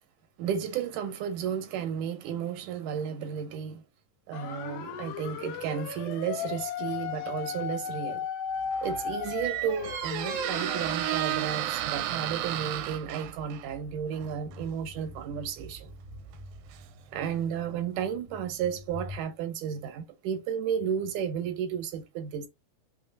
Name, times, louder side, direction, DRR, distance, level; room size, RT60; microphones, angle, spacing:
voice 1, 0.4-3.8 4.3-8.3 8.8-15.9 17.1-22.5, right 8 dB, 70° right, 2.4 m, -33 dB
sound 1, 4.3-11.5, left 8 dB, 75° left, 2.3 m, -36 dB
Squeak, 8.6-17.4, right 12 dB, 90° right, 2.4 m, -34 dB
sound 2, 14.2-19.2, left 3 dB, 55° left, 1.2 m, -47 dB
6.0 x 3.2 x 5.2 m
omnidirectional pair, 4.0 m